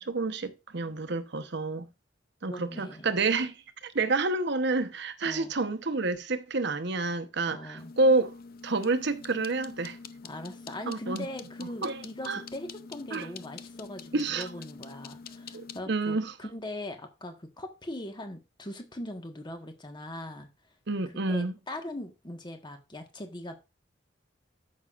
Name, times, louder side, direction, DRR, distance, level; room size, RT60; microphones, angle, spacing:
voice 1, 0.0-1.9 2.4-3.6 3.8-8.3 8.6-10.0 10.9-11.3 11.8-12.0 12.2-12.4 13.1-13.3 14.1-14.5 15.5-16.3 20.9-21.5, right 3 dB, 65° right, 1.0 m, -28 dB
voice 2, 2.4-3.1 5.2-5.5 7.5-7.9 10.2-20.5 21.3-23.6, left 1 dB, 25° left, 1.4 m, -40 dB
Content warning, 7.8-15.8, left 5 dB, 50° left, 0.6 m, -46 dB
13.5 x 6.3 x 2.5 m
head